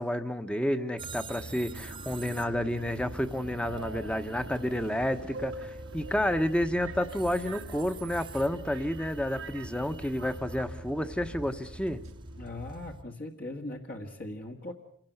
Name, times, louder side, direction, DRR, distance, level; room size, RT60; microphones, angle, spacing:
voice 1, 0.0-12.0, left 1 dB, 5° left, 10 dB, 1.1 m, -30 dB
sound 1, 1.0-13.0, right 1 dB, 25° right, 1.2 m, -44 dB
Subway metro underground, 1.7-12.5, right 2 dB, 90° right, 1.6 m, -46 dB
voice 2, 12.4-14.7, left 2 dB, 50° left, 1 dB, 1.8 m, -39 dB
26.5 x 17.5 x 8.0 m, 0.64 s
head